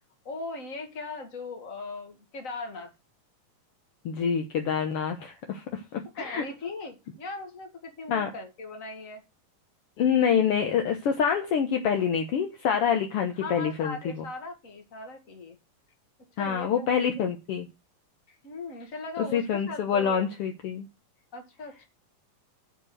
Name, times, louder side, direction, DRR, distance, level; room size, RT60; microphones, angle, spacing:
voice 1, 0.2-2.9 6.2-9.2 13.4-15.6 16.4-17.2 18.3-20.2 21.3-21.9, left 3 dB, 30° left, 4 dB, 2.0 m, -39 dB
voice 2, 4.0-6.4 8.1-8.3 10.0-14.0 16.4-17.7 19.3-20.9, left 7 dB, 65° left, 5 dB, 1.4 m, -26 dB
9.8 x 4.5 x 7.4 m, 0.28 s
omnidirectional pair, 3.9 m